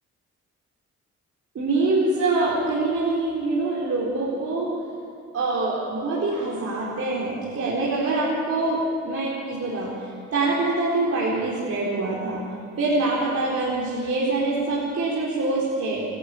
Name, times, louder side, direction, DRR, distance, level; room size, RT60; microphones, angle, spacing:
voice 1, 1.5-4.7 5.3-12.4 12.8-16.0, right 2 dB, 50° right, -6 dB, 4.5 m, -25 dB
28.0 x 11.5 x 8.7 m, 2.5 s
cardioid pair, 90°, 30 cm